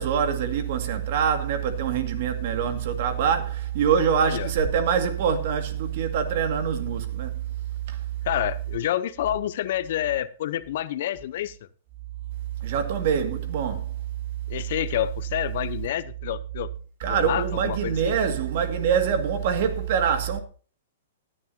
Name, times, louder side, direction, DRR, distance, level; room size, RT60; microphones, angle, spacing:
voice 1, 0.0-7.3 7.9-8.0 12.6-13.8 17.0-20.4, right 7 dB, 55° right, 2.1 m, -24 dB
voice 2, 8.2-11.6 14.5-16.7 17.1-18.1, left 12 dB, 60° left, 0.8 m, -28 dB
17.5 x 9.9 x 2.8 m
hypercardioid pair, 140°, 0 cm